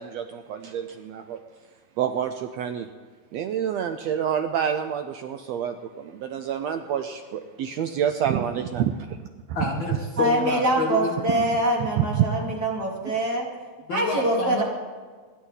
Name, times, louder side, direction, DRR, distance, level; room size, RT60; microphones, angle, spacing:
voice 1, 0.0-1.4 2.0-2.9 3.3-9.2 11.4-11.5 12.0-12.5, right 9 dB, 75° right, 8 dB, 1.7 m, -28 dB
voice 2, 9.5-11.2 13.9-14.6, left 4 dB, 55° left, 0 dB, 1.6 m, -28 dB
voice 3, 10.2-13.5 13.9-14.6, right 1 dB, 35° right, -2 dB, 2.9 m, -24 dB
26.0 x 11.0 x 4.0 m, 1.5 s
omnidirectional pair, 3.4 m